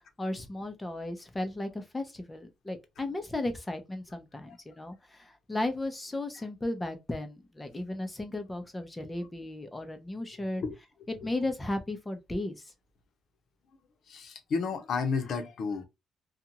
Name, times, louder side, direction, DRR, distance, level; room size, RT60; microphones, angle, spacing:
voice 1, 0.2-10.6 11.1-12.7, left 2 dB, 15° left, 0.8 m, -35 dB
voice 2, 14.1-15.9, left 5 dB, 65° left, 0.8 m, -31 dB
2.6 x 2.4 x 2.9 m
cardioid pair, 90°, 0 cm